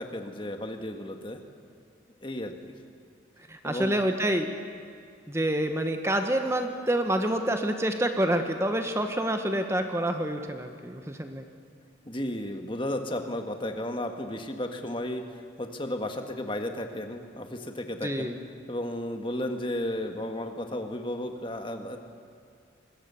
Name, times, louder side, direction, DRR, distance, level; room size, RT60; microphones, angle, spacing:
voice 1, 0.0-1.4 2.2-2.7 3.6-4.0 12.0-15.2 15.6-18.3 18.7-22.0, left 1 dB, 25° left, 5 dB, 1.6 m, -33 dB
voice 2, 3.5-4.5 5.3-11.4 18.0-18.4, right 1 dB, 15° right, 6 dB, 1.2 m, -27 dB
25.5 x 22.0 x 7.0 m, 2.3 s
head